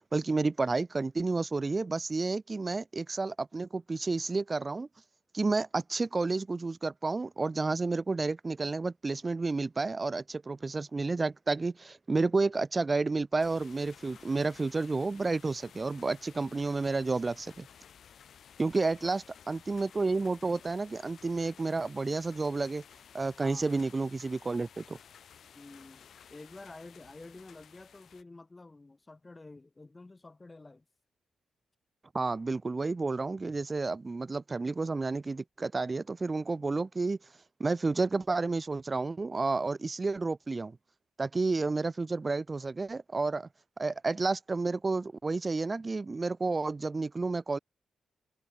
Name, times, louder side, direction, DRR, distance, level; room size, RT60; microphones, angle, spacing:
voice 1, 0.1-4.9 5.3-17.7 18.6-22.8 23.1-25.0 32.1-37.2 37.6-40.8 41.2-43.5 43.8-47.6, right 3 dB, 35° right, 0.5 m, -31 dB
sound 1, 13.4-28.2, left 8 dB, 70° left, 2.8 m, -55 dB
voice 2, 18.8-19.2 23.4-23.7 25.5-30.8, left 2 dB, 25° left, 4.3 m, -50 dB
supercardioid pair, 60°, 0 cm